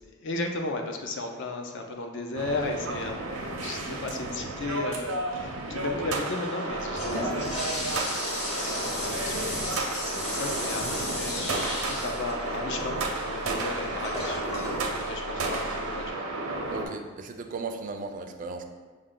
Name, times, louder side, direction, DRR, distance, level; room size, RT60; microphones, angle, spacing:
voice 1, 0.1-9.6 10.2-16.2, left 3 dB, 55° left, 3 dB, 0.5 m, -35 dB
sound 1, 2.4-16.9, right 2 dB, 80° right, 0.6 m, -32 dB
Toilet flush, 6.7-16.1, left 1 dB, 30° left, 0.9 m, -35 dB
voice 2, 10.1-10.7 16.7-18.6, right 3 dB, 35° right, 5 dB, 0.3 m, -37 dB
6.2 x 2.1 x 3.7 m, 1.4 s
head